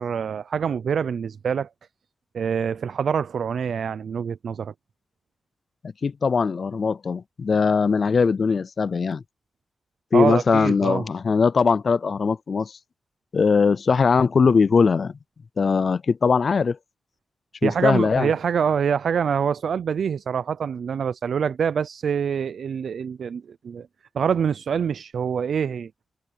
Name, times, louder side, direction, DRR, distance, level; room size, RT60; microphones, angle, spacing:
voice 1, 0.0-1.7 2.3-4.7 10.1-11.1 17.6-23.9 24.1-25.9, right 7 dB, 70° right, 0.5 m, -25 dB
voice 2, 6.0-9.2 10.1-12.8 13.3-15.1 15.6-16.8 17.6-18.3, left 5 dB, 50° left, 0.4 m, -20 dB
wide cardioid pair, 130°, 0 cm